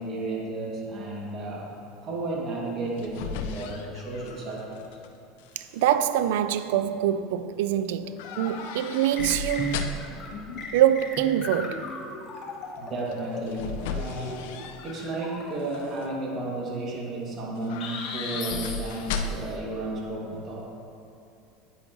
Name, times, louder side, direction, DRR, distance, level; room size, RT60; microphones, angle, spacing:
voice 1, 0.0-1.7 2.0-4.8 10.0-10.1 12.8-14.5 14.8-20.7, right 2 dB, 40° right, 2.1 m, -33 dB
sound 1, 2.7-5.1 5.4-6.0 8.2-10.3 13.1-15.2 15.6-16.1 17.6-19.6 19.9-20.0, left 5 dB, 75° left, 0.6 m, -36 dB
voice 2, 5.6-10.0 10.7-11.9, right 11 dB, 80° right, 0.4 m, -25 dB
sound 2, 8.0-8.8 9.2-15.8 17.8-19.4, left 3 dB, 45° left, 1.2 m, -38 dB
9.1 x 9.1 x 3.0 m
supercardioid pair, 110°, 0 cm